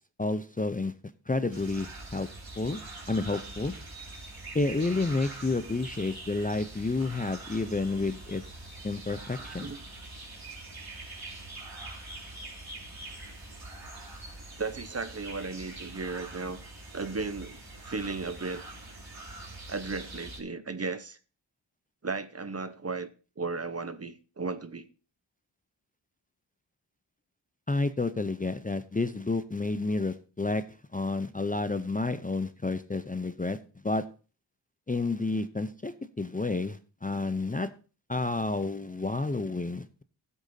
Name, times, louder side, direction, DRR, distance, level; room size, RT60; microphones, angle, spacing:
voice 1, 0.2-0.9 1.3-2.3 2.6-2.8 3.1-3.7 4.5-8.4 8.8-9.7 27.7-30.6 30.9-33.6 33.8-34.0 34.9-37.7 38.1-40.0, left 3 dB, 20° left, 0.5 m, -30 dB
sound 1, 1.5-20.4, right 2 dB, 50° right, 3.4 m, -44 dB
voice 2, 14.6-16.6 16.9-18.6 19.7-21.2 22.0-23.1 23.4-24.9, right 4 dB, 35° right, 0.8 m, -35 dB
16.0 x 8.2 x 2.7 m
wide cardioid pair, 90°, 45 cm